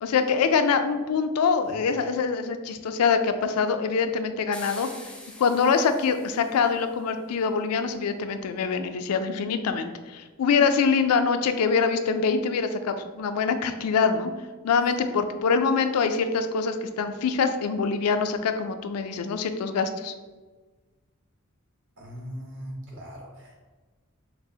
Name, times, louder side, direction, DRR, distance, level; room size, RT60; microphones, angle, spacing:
voice 1, 0.0-4.9 5.4-14.3 14.6-20.1, left 5 dB, 90° left, 9 dB, 0.3 m, -24 dB
sound 1, 4.5-6.9, left 1 dB, 5° left, 0.4 m, -45 dB
voice 2, 22.0-23.6, equal, 60° right, -2 dB, 1.1 m, -40 dB
5.9 x 2.0 x 2.7 m, 1.3 s
head